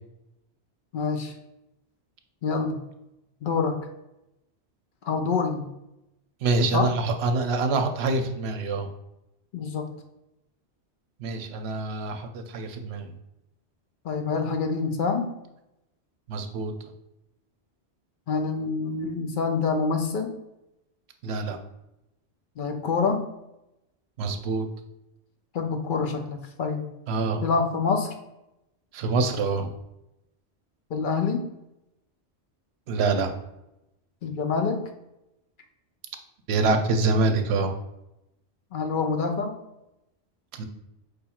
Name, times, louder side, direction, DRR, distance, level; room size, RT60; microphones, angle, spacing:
voice 1, 0.9-1.3 2.4-2.8 3.4-3.8 5.0-5.7 6.7-6.9 9.5-9.9 14.0-15.3 18.3-20.3 22.6-23.2 25.5-26.9 27.4-28.1 30.9-31.5 34.2-34.8 38.7-39.6, left 5 dB, 60° left, 5 dB, 0.6 m, -26 dB
voice 2, 6.4-8.9 11.2-13.1 16.3-16.7 21.2-21.6 24.2-24.7 27.1-27.4 28.9-29.7 32.9-33.3 36.5-37.7 40.6-40.7, right 3 dB, 70° right, 6 dB, 0.8 m, -25 dB
5.0 x 2.3 x 4.2 m, 0.89 s
omnidirectional pair, 1.2 m